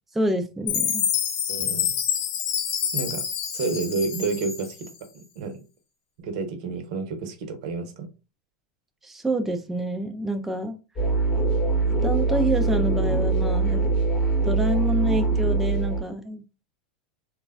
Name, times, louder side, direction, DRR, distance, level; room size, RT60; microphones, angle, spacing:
voice 1, 0.1-1.1 9.0-10.8 12.0-13.8 14.4-16.4, right 1 dB, 5° right, 0.3 m, -27 dB
Chime, 0.7-4.9, left 9 dB, 55° left, 0.7 m, -27 dB
voice 2, 1.5-1.9 2.9-3.2 3.5-5.6 6.2-8.1, right 4 dB, 65° right, 0.7 m, -30 dB
sound 1, 11.0-16.0, right 3 dB, 25° left, 0.8 m, -23 dB
3.1 x 2.2 x 2.2 m
hypercardioid pair, 110°, 4 cm